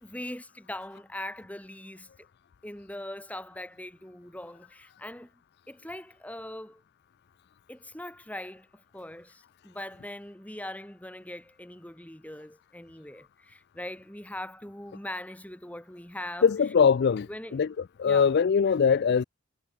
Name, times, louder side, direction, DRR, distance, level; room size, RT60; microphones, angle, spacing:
voice 1, 0.0-2.1 2.6-5.3 5.7-6.8 7.7-16.7 17.2-17.6 18.0-18.4, left 1 dB, 5° left, 2.1 m, -41 dB
voice 2, 16.4-17.7 18.0-19.2, left 6 dB, 50° left, 0.3 m, -22 dB
head